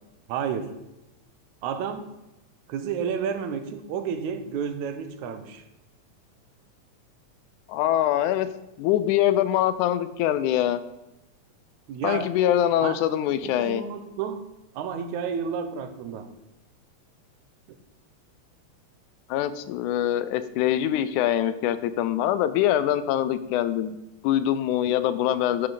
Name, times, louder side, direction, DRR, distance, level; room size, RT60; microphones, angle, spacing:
voice 1, 0.3-0.8 1.6-2.1 2.7-5.6 11.9-12.4 12.8-13.0 13.4-14.5 14.8-16.3 24.9-25.0, right 7 dB, 80° right, 8 dB, 2.1 m, -31 dB
voice 2, 7.7-8.5 8.8-10.8 12.0-13.8 19.3-24.0 24.2-25.7, left 11 dB, 85° left, 13 dB, 2.0 m, -24 dB
11.0 x 6.6 x 4.0 m, 0.93 s
omnidirectional pair, 3.5 m